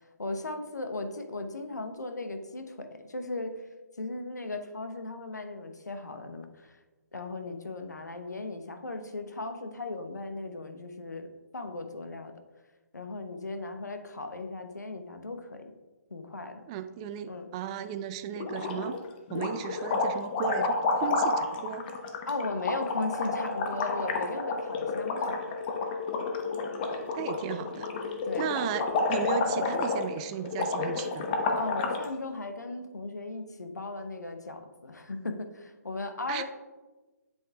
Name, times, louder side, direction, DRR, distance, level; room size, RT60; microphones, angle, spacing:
voice 1, 0.2-3.6 4.0-6.8 7.1-12.3 12.9-15.7 16.1-16.6 17.2-17.5 22.3-25.6 28.2-28.5 31.6-36.4, left 2 dB, 80° left, 7 dB, 0.9 m, -37 dB
voice 2, 16.7-19.0 19.3-21.8 26.9-27.9 28.4-31.3 36.3-36.4, right 9 dB, 20° right, 10 dB, 0.3 m, -35 dB
sound 1, 18.4-19.0 19.3-32.0, left 3 dB, 35° left, 0.9 m, -30 dB
8.2 x 8.1 x 2.3 m, 1.2 s
figure-of-eight pair, 140°, 9 cm